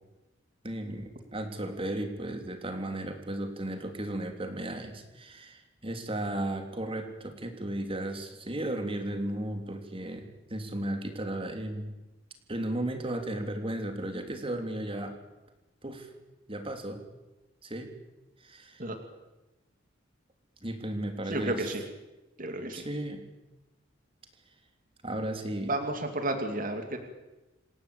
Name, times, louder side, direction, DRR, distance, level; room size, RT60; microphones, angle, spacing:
voice 1, 0.6-11.9 12.5-15.1 15.8-16.1 16.5-17.0 17.6-17.9 18.4-18.8 20.6-21.7 22.7-23.3 25.0-25.7, right 1 dB, 30° right, 5 dB, 3.3 m, -35 dB
voice 2, 21.3-21.8 22.4-22.9 25.6-27.0, right 1 dB, 45° right, 5 dB, 2.5 m, -32 dB
28.0 x 16.5 x 8.6 m, 1.1 s
head